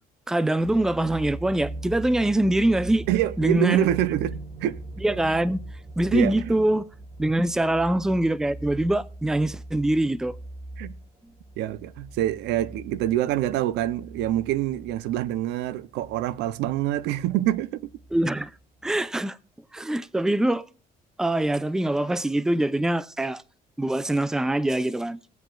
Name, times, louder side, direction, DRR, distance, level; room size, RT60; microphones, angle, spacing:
voice 1, 0.3-3.1 3.4-3.9 5.0-5.6 6.0-6.9 7.2-10.4 18.1-18.5 18.8-19.4 19.7-20.6 21.2-23.4 23.8-25.2, right 1 dB, 5° right, 0.4 m, -24 dB
sound 1, 0.6-18.5 18.9-19.0, right 2 dB, 30° right, 1.0 m, -41 dB
voice 2, 3.1-4.8 6.1-6.5 10.8-11.0 11.6-17.9, right 13 dB, 90° right, 0.5 m, -26 dB
20.5 x 7.8 x 2.3 m
cardioid pair, 110°, 17 cm